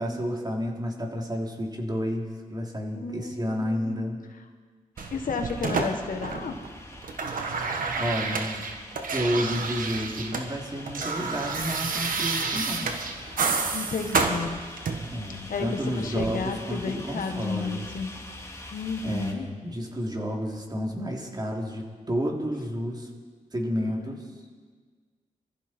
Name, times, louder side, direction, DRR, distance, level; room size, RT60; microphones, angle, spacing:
voice 1, 0.0-4.2 8.0-8.7 9.1-13.0 15.1-17.9 19.0-23.1 23.5-24.3, equal, 30° right, 0 dB, 3.1 m, -31 dB
voice 2, 2.9-4.0 5.1-6.6 13.7-14.6 15.5-18.1 18.7-19.5 23.8-24.2, left 4 dB, 75° left, 5 dB, 1.6 m, -32 dB
sound 1, 5.0-19.3, left 1 dB, 20° left, 2.5 m, -44 dB
sound 2, 5.0-6.7 6.9-10.5 10.7-15.2 16.2-16.3, right 4 dB, 80° right, 1.5 m, -29 dB
22.0 x 14.5 x 4.4 m, 1.5 s
cardioid pair, 60°, 14 cm